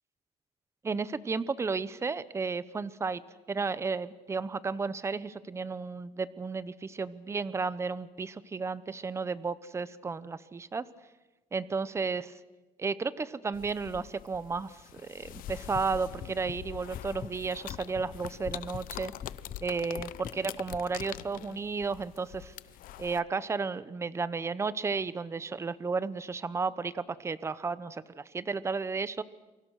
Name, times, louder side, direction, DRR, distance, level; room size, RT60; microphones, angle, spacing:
voice 1, 0.8-3.2 3.5-10.9 11.5-12.2 12.8-19.1 19.6-22.5 23.0-29.2, right 4 dB, 20° right, 16 dB, 0.8 m, -33 dB
sound 1, 13.5-23.2, left 14 dB, 75° left, 0.8 m, -45 dB
sound 2, 15.2-21.4, left 9 dB, 45° left, 0.8 m, -46 dB
28.5 x 24.0 x 6.4 m, 1.1 s
cardioid pair, 145°, 14 cm